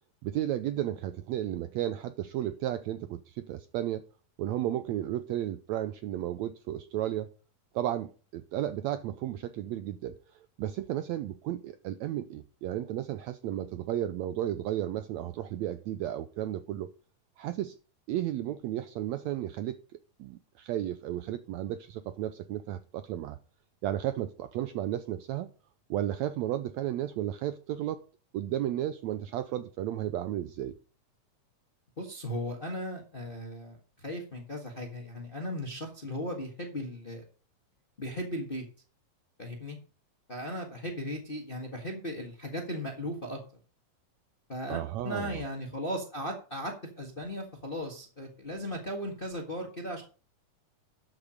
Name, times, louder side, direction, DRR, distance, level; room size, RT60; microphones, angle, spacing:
voice 1, 0.2-4.0 4.4-7.3 7.7-10.2 10.6-16.9 17.4-17.8 18.1-19.8 20.2-23.4 23.8-25.5 25.9-28.0 28.3-30.8 44.7-45.4, right 12 dB, 85° right, 1.6 m, -33 dB
voice 2, 32.0-37.2 38.0-38.6 39.4-39.8 40.3-43.4 44.5-50.0, equal, 30° left, 1.0 m, -37 dB
13.0 x 6.1 x 5.1 m
omnidirectional pair, 3.8 m